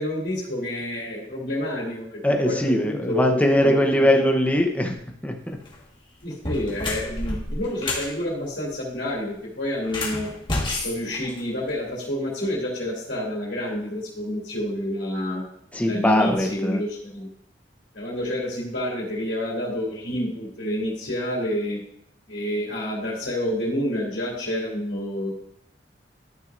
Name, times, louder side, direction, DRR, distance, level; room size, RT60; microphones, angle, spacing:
voice 1, 0.0-2.6 2.8-4.2 6.2-10.3 10.8-15.4 15.8-17.3 17.9-21.8 22.3-25.3, left 1 dB, 70° left, -6 dB, 2.9 m, -28 dB
voice 2, 2.2-5.0 5.2-5.6 15.7-16.8, equal, 10° left, 3 dB, 0.9 m, -21 dB
sound 1, 5.5-5.8 6.3-8.1 9.8-11.9, left 2 dB, 30° left, 1.8 m, -30 dB
12.0 x 6.5 x 2.6 m, 0.72 s
head